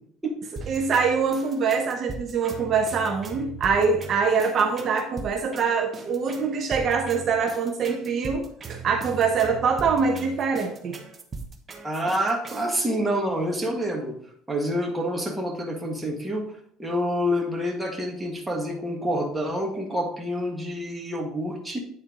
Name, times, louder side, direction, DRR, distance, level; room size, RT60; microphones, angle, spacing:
sound 1, 0.6-12.8, right 4 dB, 30° right, 1.0 m, -39 dB
voice 1, 0.7-11.0, right 5 dB, 45° right, 3 dB, 0.9 m, -24 dB
voice 2, 11.8-14.2 14.5-21.8, equal, 10° right, 1 dB, 1.6 m, -27 dB
8.9 x 4.4 x 3.8 m, 0.63 s
cardioid pair, 115°, 0 cm